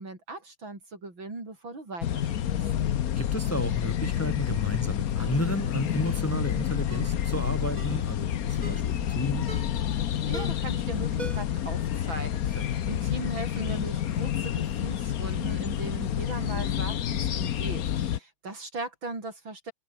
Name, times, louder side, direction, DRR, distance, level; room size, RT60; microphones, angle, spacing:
voice 1, 0.0-2.7 10.2-19.7, right 3 dB, 90° right, 7.3 m, -39 dB
sound 1, 2.0-18.2, left 10 dB, 55° left, 1.2 m, -29 dB
voice 2, 3.2-9.5 12.6-12.7, equal, 10° left, 1.9 m, -32 dB
Ringtone, 5.2-5.4 6.0-6.3 6.9-7.2 7.8-8.0 8.6-8.9 9.5-9.8 10.3-10.7 11.2-11.6 11.9-12.0, right 3 dB, 20° right, 1.8 m, -42 dB
omnidirectional pair, 2.1 m